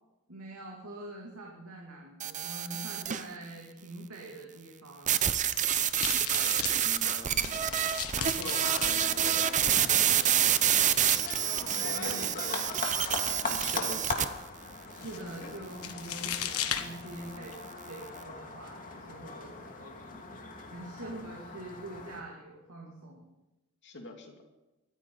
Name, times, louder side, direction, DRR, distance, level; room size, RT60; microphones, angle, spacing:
voice 1, 0.3-5.3 11.7-12.3 13.6-14.0 14.9-17.6 17.9-20.4 20.7-23.3, right 1 dB, 80° right, -2 dB, 2.8 m, -45 dB
sound 1, 2.2-3.3 5.1-14.2, right 10 dB, 35° right, 0.7 m, -27 dB
sound 2, 5.3-17.6, left 9 dB, 85° left, 1.3 m, -40 dB
voice 2, 6.3-11.1 11.5-12.7 13.2-14.3 15.4-15.5 23.8-24.3, left 3 dB, 55° left, 2 dB, 2.6 m, -44 dB
sound 3, 7.4-22.2, left 3 dB, 40° left, 2.2 m, -41 dB
23.0 x 14.5 x 4.1 m, 1.0 s
head